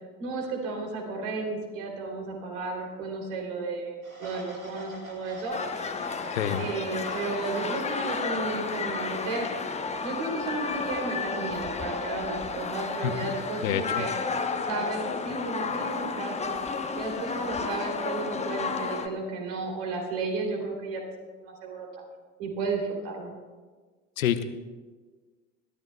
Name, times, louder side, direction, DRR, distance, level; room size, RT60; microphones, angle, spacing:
voice 1, 0.2-5.6 6.6-9.5 10.0-14.1 14.6-16.5 16.9-21.9 22.4-23.3, right 3 dB, 65° right, 1 dB, 3.2 m, -33 dB
sound 1, 4.0-9.7, right 1 dB, 90° right, 2.4 m, -47 dB
sound 2, 5.5-19.1, left 4 dB, 15° left, 0.9 m, -32 dB
voice 2, 6.3-6.7 13.0-13.3 13.6-14.0 24.2-24.4, left 10 dB, 75° left, 11 dB, 0.8 m, -28 dB
21.0 x 13.5 x 2.3 m, 1.4 s
figure-of-eight pair, 65°, 41 cm